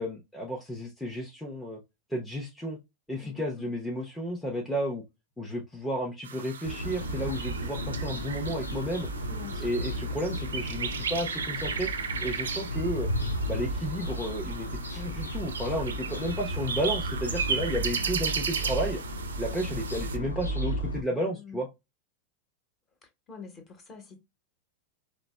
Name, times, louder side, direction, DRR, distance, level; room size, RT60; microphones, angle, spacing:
voice 1, 0.0-1.8 2.1-2.8 3.1-5.0 5.4-9.1 9.6-11.9 12.2-13.1 13.5-19.0 19.4-21.7, equal, 5° left, 0.7 m, -32 dB
voice 2, 3.1-3.8 9.3-9.7 21.2-21.6 23.3-24.2, left 4 dB, 25° left, 1.1 m, -47 dB
sound 1, 6.2-20.2, right 6 dB, 65° right, 0.4 m, -36 dB
sound 2, 6.6-21.0, equal, 85° left, 0.5 m, -34 dB
4.9 x 2.1 x 2.2 m
figure-of-eight pair, 90°, 0 cm